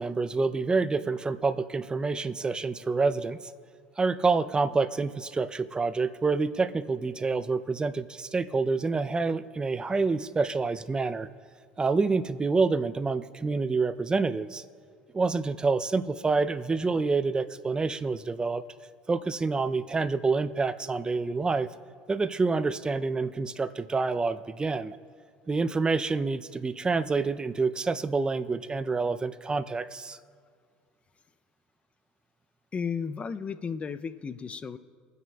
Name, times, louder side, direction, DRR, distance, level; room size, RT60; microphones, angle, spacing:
voice 1, 0.0-3.5 4.0-11.3 11.8-14.6 15.1-18.6 19.1-21.7 22.1-25.0 25.5-30.2, right 4 dB, 20° right, 13 dB, 0.5 m, -27 dB
voice 2, 32.7-34.8, left 6 dB, 30° left, 12 dB, 0.6 m, -34 dB
23.5 x 9.3 x 2.4 m, 2.1 s
hypercardioid pair, 85°, 4 cm